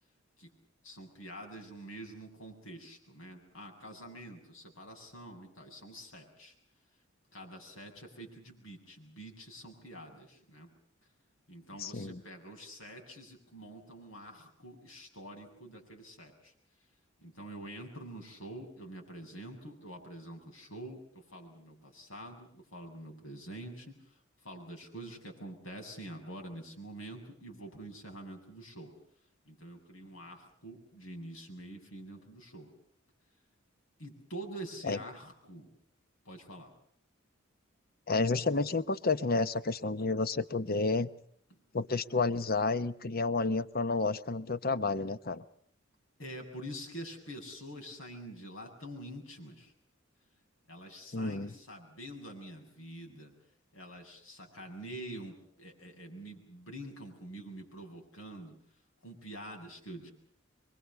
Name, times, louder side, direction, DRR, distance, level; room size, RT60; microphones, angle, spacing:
voice 1, 0.8-6.5 7.3-10.7 11.5-16.5 17.2-23.9 24.4-28.9 29.5-32.7 34.0-35.7 36.3-36.7 46.2-49.7 50.7-53.3 53.7-58.6 59.0-60.1, right 1 dB, 85° left, 3 dB, 7.6 m, -46 dB
voice 2, 11.8-12.2 34.8-35.0 38.1-41.1 41.7-45.4 51.1-51.5, left 3 dB, 50° left, 13 dB, 1.0 m, -30 dB
26.5 x 23.5 x 6.9 m, 0.64 s
head